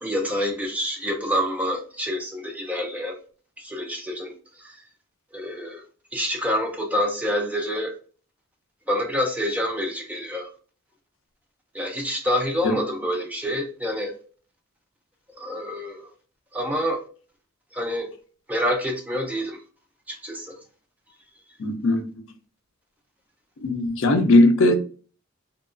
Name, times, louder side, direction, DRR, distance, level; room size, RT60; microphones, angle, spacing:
voice 1, 0.0-3.2 3.6-4.8 5.3-5.8 6.1-7.9 8.9-10.5 11.7-14.2 15.3-16.1 16.5-17.0 17.7-18.1 18.5-19.6 20.1-20.6, equal, 5° right, 0.4 m, -27 dB
voice 2, 21.6-22.0 23.6-24.8, left 1 dB, 60° left, 0.4 m, -18 dB
2.8 x 2.3 x 2.4 m
head